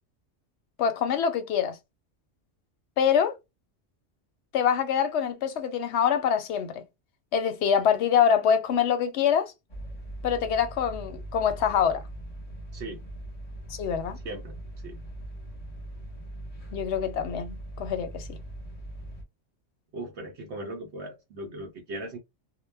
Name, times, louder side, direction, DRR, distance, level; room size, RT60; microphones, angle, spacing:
voice 1, 0.8-1.8 3.0-3.3 4.5-6.9 7.3-9.5 10.2-12.0 13.7-14.2 16.7-18.4, left 8 dB, 70° left, 0.8 m, -25 dB
sound 1, 9.7-19.2, right 1 dB, 35° left, 0.8 m, -41 dB
voice 2, 12.7-13.0 14.2-14.5 14.8-15.0 19.9-22.2, right 1 dB, 65° right, 0.9 m, -38 dB
2.2 x 2.1 x 3.2 m
omnidirectional pair, 1.3 m